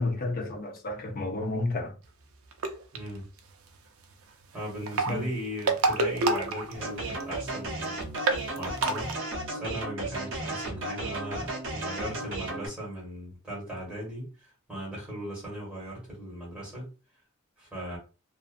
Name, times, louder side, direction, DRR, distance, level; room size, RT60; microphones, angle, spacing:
voice 1, 0.0-2.0 5.1-5.3, left 2 dB, 45° left, 0.5 m, -31 dB
sound 1, 2.5-3.0 4.7-7.2 7.5-7.6 7.8-7.9 8.2-9.1, right 3 dB, 80° right, 0.4 m, -27 dB
voice 2, 2.9-3.3 4.5-8.1 8.5-9.1 9.5-14.3 14.7-16.9 17.6-18.0, equal, 5° right, 1.6 m, -38 dB
sound 2, 6.7-12.7, right 2 dB, 60° right, 0.9 m, -34 dB
2.5 x 2.4 x 2.5 m
head